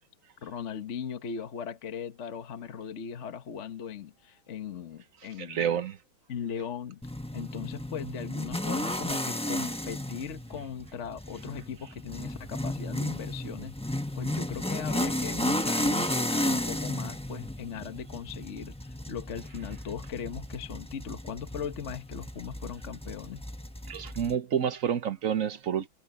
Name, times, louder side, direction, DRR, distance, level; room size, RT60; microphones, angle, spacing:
voice 1, 0.4-5.7 6.3-7.0 7.3-23.4, left 7 dB, 40° left, 1.2 m, -39 dB
voice 2, 5.4-6.0 23.9-25.9, right 8 dB, 55° right, 1.0 m, -29 dB
sound 1, 7.0-24.3, left 1 dB, 5° left, 0.6 m, -33 dB
omnidirectional pair, 2.2 m